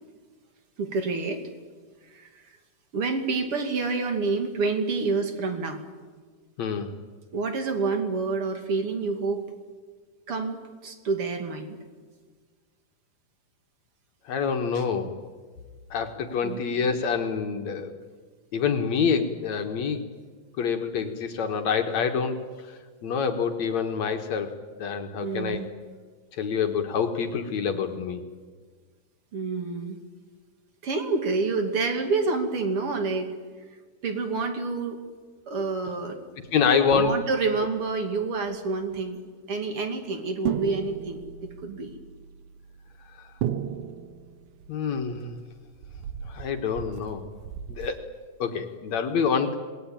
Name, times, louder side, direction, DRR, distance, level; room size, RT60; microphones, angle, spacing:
voice 1, 0.8-1.4 2.1-2.5 2.9-5.8 7.3-9.5 10.3-11.8 14.7-14.8 16.4-16.6 25.2-25.7 29.3-30.0 30.8-33.3 34.0-35.0 35.5-36.2 36.9-39.2 39.5-42.0, right 4 dB, 45° right, 5 dB, 3.2 m, -28 dB
voice 2, 6.6-6.9 14.3-15.1 15.9-17.9 18.5-20.1 20.6-22.4 23.0-25.6 26.4-28.2 36.5-37.2 44.7-45.4 46.3-47.2 47.7-48.0 48.4-49.6, left 6 dB, 60° left, 5 dB, 2.5 m, -26 dB
sound 1, 36.6-36.8 37.1-37.4 37.7-37.9 38.5-38.6 38.8-39.0 39.7-39.8 40.5-47.9, right 9 dB, 75° right, 2.5 m, -36 dB
26.5 x 20.5 x 8.8 m, 1.5 s
omnidirectional pair, 3.9 m